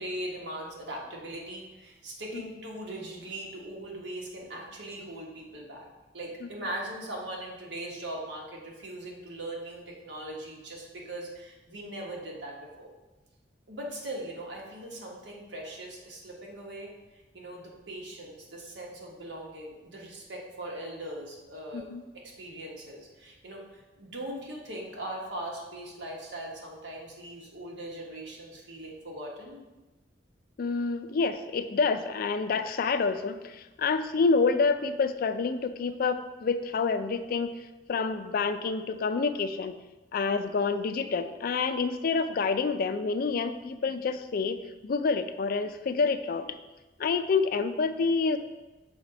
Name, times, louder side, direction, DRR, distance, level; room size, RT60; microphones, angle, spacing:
voice 1, 0.0-5.9 6.1-12.9 13.7-21.9 22.1-29.6, right 1 dB, 80° right, -2 dB, 1.4 m, -40 dB
voice 2, 21.7-22.0 30.6-37.5 37.9-39.8 40.1-44.6 44.9-46.5 47.0-48.4, left 4 dB, 55° left, 10 dB, 0.4 m, -28 dB
6.3 x 3.3 x 4.9 m, 1.1 s
head